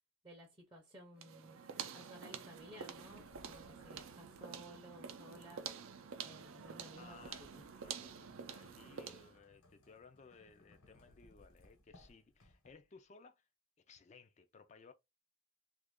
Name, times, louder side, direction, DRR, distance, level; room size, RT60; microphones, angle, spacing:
voice 1, 0.2-1.6 1.9-5.6 6.2-7.6, equal, 20° right, 0.6 m, -56 dB
sound 1, 1.2-9.4, right 7 dB, 70° right, 0.5 m, -48 dB
sound 2, 2.0-13.0, left 1 dB, 70° left, 1.2 m, -67 dB
voice 2, 7.0-13.5 13.9-14.9, left 5 dB, 30° left, 0.3 m, -60 dB
2.9 x 2.4 x 3.5 m
head